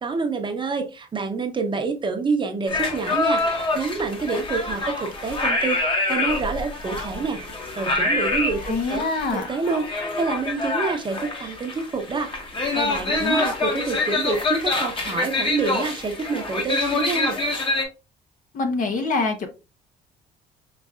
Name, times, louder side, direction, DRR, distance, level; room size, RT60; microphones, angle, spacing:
voice 1, 0.0-5.8 6.1-7.4 7.7-9.0 9.3-12.3 12.7-17.4, right 4 dB, 30° right, 5 dB, 0.9 m, -27 dB
sound 1, 2.7-17.8, left 2 dB, 30° left, 1.2 m, -26 dB
voice 2, 8.6-9.5 13.2-13.5 18.5-19.5, left 3 dB, 50° left, 6 dB, 0.9 m, -25 dB
5.0 x 3.3 x 2.4 m, 0.30 s
cardioid pair, 110°, 17 cm